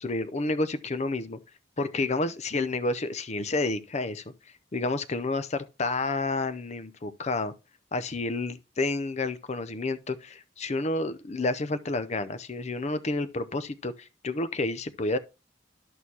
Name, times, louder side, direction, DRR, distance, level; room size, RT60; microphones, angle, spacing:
voice 1, 0.0-1.4 1.8-4.2 4.7-7.5 7.9-15.2, left 2 dB, 40° left, 0.6 m, -30 dB
11.0 x 6.4 x 2.8 m
head